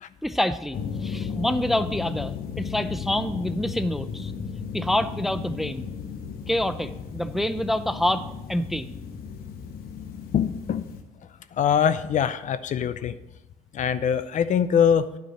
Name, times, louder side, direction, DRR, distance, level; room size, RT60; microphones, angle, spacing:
voice 1, 0.2-4.3 4.7-5.9 6.5-8.9, left 1 dB, ahead, 11 dB, 0.4 m, -27 dB
sound 1, 0.7-11.0, left 6 dB, 70° left, 1.0 m, -35 dB
voice 2, 10.3-10.9 11.6-13.1 13.7-15.1, left 8 dB, 50° left, 13 dB, 0.6 m, -23 dB
9.1 x 4.7 x 7.2 m, 0.98 s
supercardioid pair, 70°, 16 cm